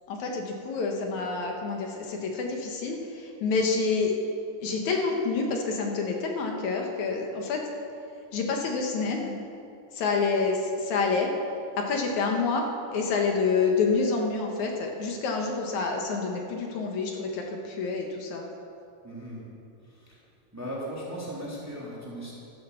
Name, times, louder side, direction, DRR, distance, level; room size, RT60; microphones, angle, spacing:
voice 1, 0.1-4.1 4.6-7.6 8.3-9.3 9.9-11.3 11.8-12.6 12.9-18.5, left 4 dB, 70° left, 2 dB, 2.5 m, -28 dB
voice 2, 19.0-19.4 20.5-22.3, equal, 5° right, -6 dB, 2.7 m, -37 dB
12.5 x 10.5 x 6.9 m, 2.6 s
omnidirectional pair, 3.7 m